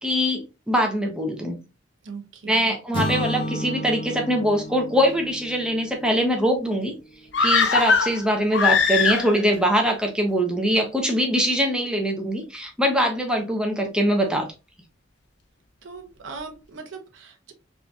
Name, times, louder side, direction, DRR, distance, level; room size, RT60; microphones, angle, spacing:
voice 1, 0.0-1.6 2.5-6.9 7.4-14.5, equal, 5° right, 2 dB, 0.6 m, -23 dB
voice 2, 2.0-2.8 15.8-17.5, right 4 dB, 85° right, 4 dB, 0.7 m, -39 dB
sound 1, 2.9-7.0, equal, 25° left, 0.8 m, -32 dB
sound 2, 7.3-9.6 9.9-10.0, left 5 dB, 65° left, 0.5 m, -21 dB
3.7 x 2.6 x 2.3 m, 0.28 s
head